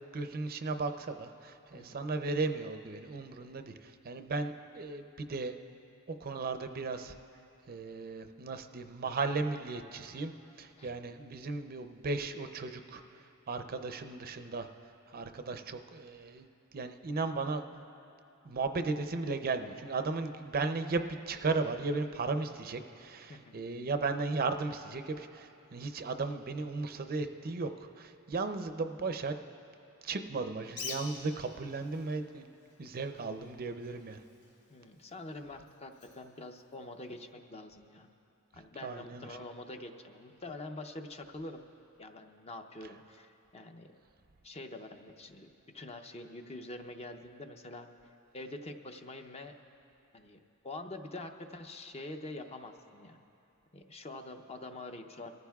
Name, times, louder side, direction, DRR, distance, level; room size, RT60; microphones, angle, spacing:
voice 1, 0.0-5.6 6.1-7.2 7.7-10.3 10.6-14.7 15.1-16.5 16.7-17.8 18.4-29.4 30.0-32.5 32.8-34.2 38.8-39.3, right 3 dB, 45° right, 8 dB, 0.5 m, -36 dB
voice 2, 1.7-2.0 10.8-10.9 23.3-23.6 34.7-38.1 38.5-41.7 42.0-43.9 44.4-47.9 48.3-49.6 50.1-50.4 50.6-53.2 53.7-55.3, left 2 dB, 30° left, 5 dB, 0.6 m, -45 dB
Bird, 30.6-37.3, left 4 dB, 90° left, 1.4 m, -49 dB
24.0 x 14.5 x 2.3 m, 2.8 s
head